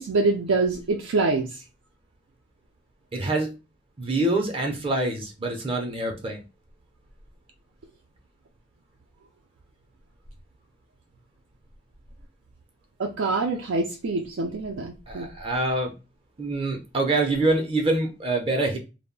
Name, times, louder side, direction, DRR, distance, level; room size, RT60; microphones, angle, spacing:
voice 1, 0.0-1.5 13.0-15.3, right 3 dB, 85° right, 1 dB, 0.4 m, -25 dB
voice 2, 3.1-3.5 4.0-6.4 15.1-15.9 16.4-18.8, right 2 dB, 30° right, 2 dB, 0.5 m, -25 dB
2.2 x 2.0 x 3.6 m, 0.29 s
head